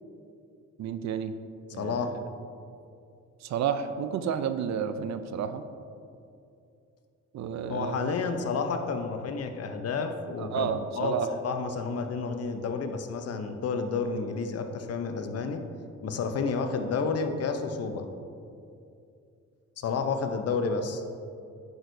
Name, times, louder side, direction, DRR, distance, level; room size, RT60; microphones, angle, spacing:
voice 1, 0.8-1.4 1.7-2.2 3.4-5.6 7.3-8.0 10.4-11.3, right 8 dB, 65° right, 10 dB, 0.5 m, -31 dB
voice 2, 1.7-2.2 7.7-10.7 10.9-15.6 16.0-18.1 19.8-21.0, left 4 dB, 55° left, 6 dB, 0.7 m, -30 dB
8.9 x 6.2 x 2.6 m, 2.5 s
cardioid pair, 90°, 30 cm